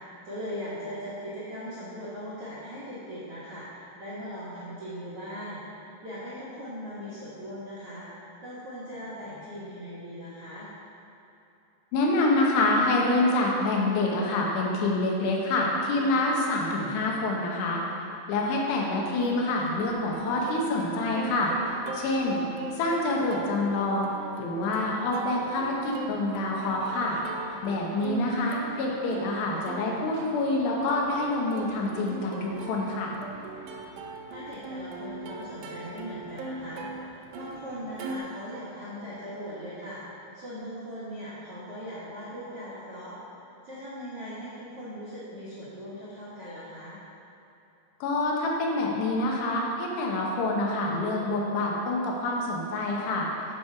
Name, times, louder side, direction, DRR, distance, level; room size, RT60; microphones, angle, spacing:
voice 1, 0.0-10.7 34.3-40.0 40.3-43.2 43.6-47.0, equal, 60° right, -9 dB, 1.5 m, -39 dB
voice 2, 11.9-17.8 18.3-21.5 21.9-22.4 22.8-24.1 24.4-27.2 27.6-33.1 48.0-53.3, left 2 dB, 80° left, -2 dB, 3.2 m, -26 dB
Plucked string instrument, 19.2-38.2, right 3 dB, 85° right, 2.0 m, -41 dB
11.0 x 5.3 x 4.6 m, 2.8 s
omnidirectional pair, 5.0 m